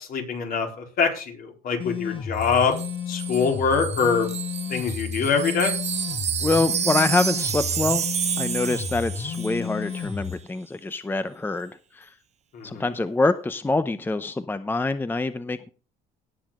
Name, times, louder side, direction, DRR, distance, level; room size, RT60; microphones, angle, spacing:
voice 1, 0.0-4.3 4.7-5.7 12.5-12.8, left 5 dB, 60° left, 2 dB, 4.0 m, -24 dB
sound 1, 1.8-10.3, left 7 dB, 30° left, 1.2 m, -32 dB
Wind chime, 2.4-9.6 9.9-10.1, right 8 dB, 40° right, 0.9 m, -30 dB
voice 2, 6.4-8.0 8.4-12.1 12.6-15.7, left 3 dB, 10° left, 11 dB, 0.7 m, -25 dB
18.0 x 7.4 x 3.7 m, 0.37 s
cardioid pair, 110°, 17 cm